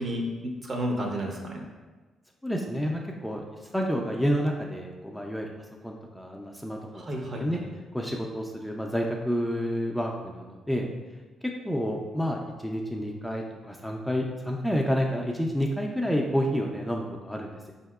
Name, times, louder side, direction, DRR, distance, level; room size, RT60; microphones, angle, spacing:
voice 1, 0.0-1.6 6.9-7.7, equal, 40° right, 1 dB, 0.6 m, -32 dB
voice 2, 2.4-3.4 3.7-5.5 5.8-7.0 7.4-7.6 7.9-10.9 11.6-17.7, equal, ahead, 0 dB, 0.3 m, -29 dB
4.0 x 2.8 x 2.3 m, 1.3 s
cardioid pair, 90°, 0 cm